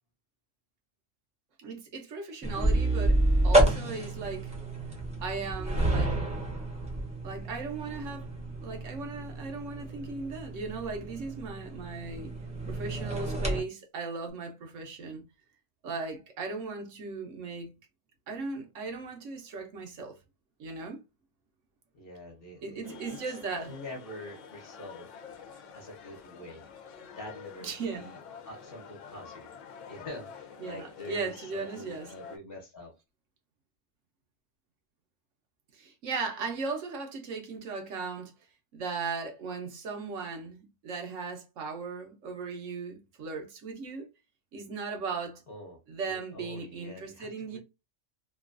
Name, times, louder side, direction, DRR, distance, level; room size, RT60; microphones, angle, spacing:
voice 1, 1.6-4.5 5.2-6.2 7.2-8.3 8.6-12.3 12.7-15.2 15.8-17.7 18.3-20.1 20.6-21.0 22.6-23.8 27.6-28.0 30.6-32.1 35.7-38.3 38.7-44.1 44.5-45.4 45.9-47.6, right 4 dB, 80° right, 1.1 m, -37 dB
sound 1, 2.4-13.6, right 1 dB, 5° right, 0.6 m, -29 dB
voice 2, 21.9-23.2 23.7-25.1 25.7-26.7 27.2-32.9 45.5-47.6, left 1 dB, 50° left, 1.0 m, -45 dB
sound 2, 22.8-32.4, left 7 dB, 80° left, 1.0 m, -48 dB
3.0 x 2.3 x 2.4 m
omnidirectional pair, 1.3 m